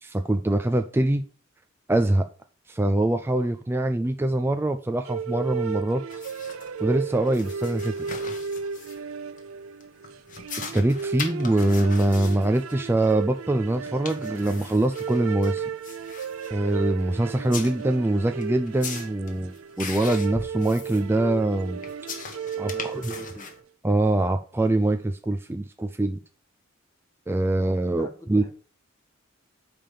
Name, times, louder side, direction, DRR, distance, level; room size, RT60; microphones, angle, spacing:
voice 1, 0.0-1.2 1.9-2.3 2.7-6.0 6.8-8.1 10.7-15.7 16.5-21.8 22.6-23.1 23.8-26.2 27.3-28.4, right 1 dB, 10° right, 7 dB, 0.4 m, -24 dB
sound 1, 5.1-23.6, right 6 dB, 90° right, 0.5 m, -34 dB
sound 2, 6.1-23.6, left 4 dB, 40° left, 1.4 m, -40 dB
voice 2, 22.7-23.5 27.9-28.5, left 1 dB, 15° left, 2 dB, 1.6 m, -44 dB
9.0 x 3.5 x 6.8 m, 0.40 s
head